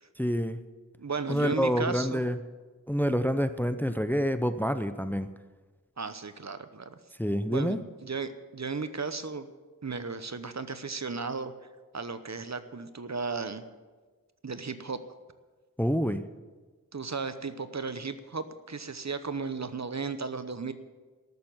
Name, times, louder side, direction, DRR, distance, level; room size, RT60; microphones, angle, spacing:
voice 1, 0.2-0.6 1.3-2.4 2.9-5.3 7.2-7.8 15.8-16.2, equal, 5° left, 11 dB, 0.6 m, -27 dB
voice 2, 1.0-2.2 6.0-7.0 7.5-9.5 9.8-11.5 11.9-13.6 14.4-15.0 16.9-20.7, right 4 dB, 55° right, 11 dB, 0.9 m, -35 dB
13.5 x 6.8 x 9.6 m, 1.4 s
wide cardioid pair, 40°, 33 cm